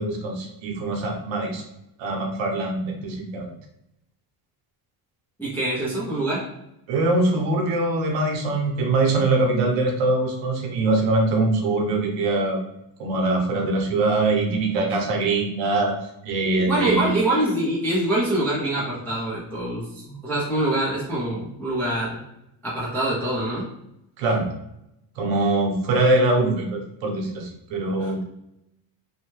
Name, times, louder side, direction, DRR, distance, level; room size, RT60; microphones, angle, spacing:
voice 1, 0.0-1.6 2.0-3.5 6.9-12.6 13.0-15.9 16.2-17.1 24.2-24.5 25.2-28.2, right 2 dB, 70° right, 2 dB, 0.8 m, -23 dB
voice 2, 5.4-6.5 16.4-22.2 22.6-23.7 28.0-28.2, right 1 dB, 5° left, -8 dB, 0.3 m, -25 dB
2.7 x 2.2 x 2.9 m, 0.83 s
cardioid pair, 180°, 46 cm